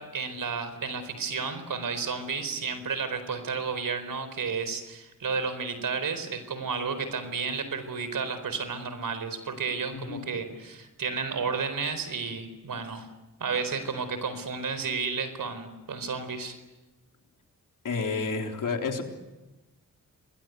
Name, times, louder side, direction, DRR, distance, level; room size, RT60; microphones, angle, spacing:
voice 1, 0.0-13.1 13.4-16.6, right 5 dB, 70° right, 11 dB, 4.4 m, -32 dB
voice 2, 9.9-10.3 17.8-19.0, left 4 dB, 65° left, 3 dB, 3.7 m, -30 dB
27.5 x 21.0 x 9.4 m, 1.1 s
cardioid pair, 75°, 34 cm